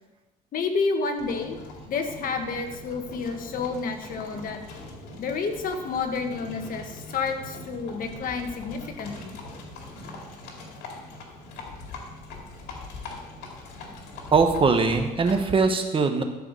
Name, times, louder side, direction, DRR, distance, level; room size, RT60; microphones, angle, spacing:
voice 1, 0.5-1.6 1.9-4.6 5.2-9.4, left 4 dB, 55° left, 5 dB, 1.6 m, -30 dB
Livestock farm animals working animals, 1.2-15.6, left 2 dB, 90° left, 2.2 m, -41 dB
voice 2, 14.3-16.2, right 4 dB, 30° right, 6 dB, 1.3 m, -21 dB
12.5 x 4.9 x 6.6 m, 1.1 s
cardioid pair, 110°, 17 cm